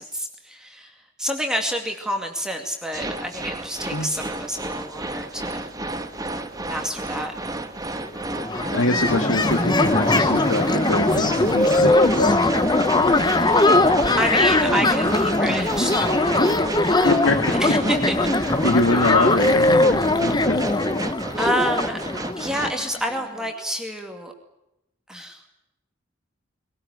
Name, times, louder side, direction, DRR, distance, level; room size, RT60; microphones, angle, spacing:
voice 1, 0.0-5.7 6.7-7.3 13.1-13.7 14.2-16.5 16.9-17.2 17.5-18.2 21.4-22.0 22.4-24.3 25.1-25.4, equal, 5° right, 3 dB, 2.4 m, -28 dB
sound 1, 2.9-22.7, right 2 dB, 20° right, 1.4 m, -31 dB
sound 2, 8.0-8.1 8.3-22.9, left 2 dB, 20° left, 1.0 m, -20 dB
voice 2, 8.5-12.4 17.0-17.4 18.4-20.6, left 2 dB, 85° left, 5 dB, 1.9 m, -24 dB
22.0 x 18.5 x 9.7 m, 0.88 s
head